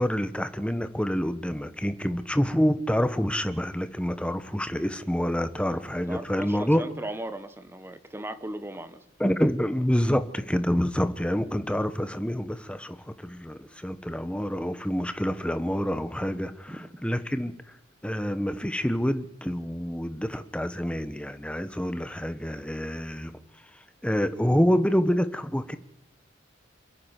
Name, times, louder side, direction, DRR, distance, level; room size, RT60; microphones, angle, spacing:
voice 1, 0.0-6.8 9.2-17.5 18.0-23.4 24.0-25.8, equal, 5° left, 10 dB, 1.1 m, -27 dB
voice 2, 5.6-9.0 16.7-17.0, right 1 dB, 10° right, 11 dB, 1.3 m, -38 dB
28.0 x 9.8 x 9.8 m, 0.78 s
head